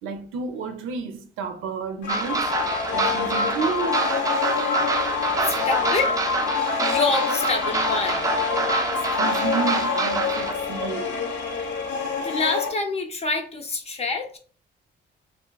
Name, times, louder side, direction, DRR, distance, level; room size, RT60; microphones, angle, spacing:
voice 1, 0.0-2.6 2.9-4.1 8.9-11.2, right 5 dB, 90° right, 0.5 m, -31 dB
sound 1, 2.0-12.7, left 5 dB, 70° left, 0.8 m, -26 dB
sound 2, 2.1-10.5, right 4 dB, 15° right, 0.4 m, -27 dB
voice 2, 5.4-6.2 6.8-8.3 11.6-11.7 12.2-14.4, left 3 dB, 30° left, 0.6 m, -27 dB
2.5 x 2.4 x 2.2 m
cardioid pair, 90°, 20 cm